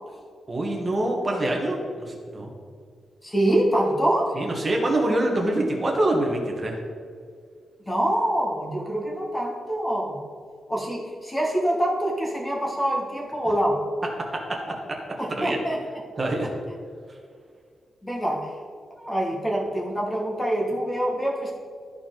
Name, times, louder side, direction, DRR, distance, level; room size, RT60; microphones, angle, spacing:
voice 1, 0.5-2.5 4.3-6.8 15.3-15.6 16.2-16.5, right 1 dB, 25° right, 0 dB, 1.5 m, -25 dB
voice 2, 3.2-4.4 7.8-10.2 10.7-13.8 15.2-16.0 16.4-16.5 18.0-18.5 18.9-21.5, right 1 dB, 10° left, -2 dB, 1.6 m, -25 dB
13.5 x 4.6 x 3.9 m, 2.1 s
wide cardioid pair, 145°, 0 cm